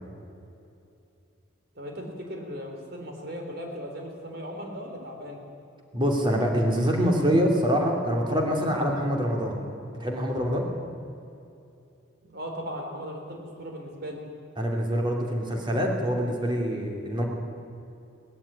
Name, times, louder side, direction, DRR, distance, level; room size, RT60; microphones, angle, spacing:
voice 1, 1.8-5.4 12.2-14.2, equal, 50° right, 2 dB, 3.7 m, -37 dB
voice 2, 5.9-9.6 10.0-10.7 14.6-17.2, equal, 25° right, 1 dB, 2.8 m, -25 dB
18.5 x 14.0 x 10.0 m, 2.7 s
head